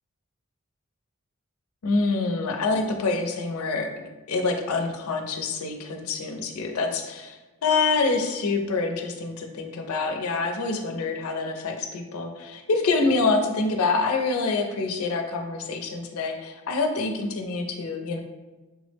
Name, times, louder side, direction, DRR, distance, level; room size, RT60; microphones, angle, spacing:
voice 1, 1.8-3.9 4.3-7.4 7.6-18.2, left 3 dB, 85° left, 4 dB, 0.4 m, -26 dB
3.4 x 2.0 x 3.2 m, 1.2 s
head